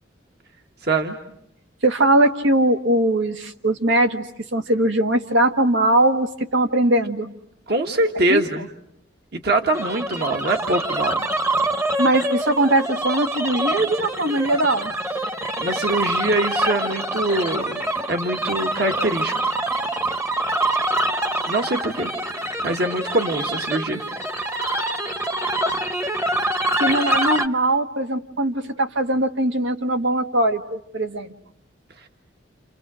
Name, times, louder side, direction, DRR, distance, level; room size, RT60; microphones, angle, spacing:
voice 1, 0.8-1.2 7.7-8.7 9.3-11.2 15.6-17.8 18.1-19.5 21.5-22.1 22.6-24.0, right 2 dB, 60° right, 3 dB, 1.7 m, -23 dB
voice 2, 1.8-4.2 4.5-7.3 8.3-8.4 12.0-14.9 26.8-31.3, right 1 dB, 85° right, 6 dB, 1.6 m, -20 dB
sound 1, 9.7-27.5, right 1 dB, 15° right, 1.0 m, -25 dB
30.0 x 29.5 x 6.2 m, 0.76 s
head